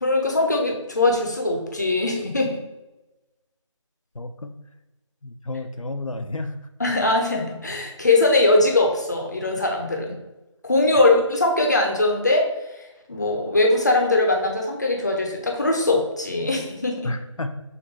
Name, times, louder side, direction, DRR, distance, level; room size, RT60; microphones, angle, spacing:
voice 1, 0.0-2.6 6.8-10.2 10.7-12.5 13.1-17.1, left 2 dB, 35° left, 1 dB, 0.6 m, -21 dB
voice 2, 4.1-4.5 5.2-6.6 17.0-17.6, left 2 dB, 85° left, 8 dB, 0.5 m, -31 dB
6.5 x 2.6 x 2.9 m, 1.0 s
figure-of-eight pair, 165°, 17 cm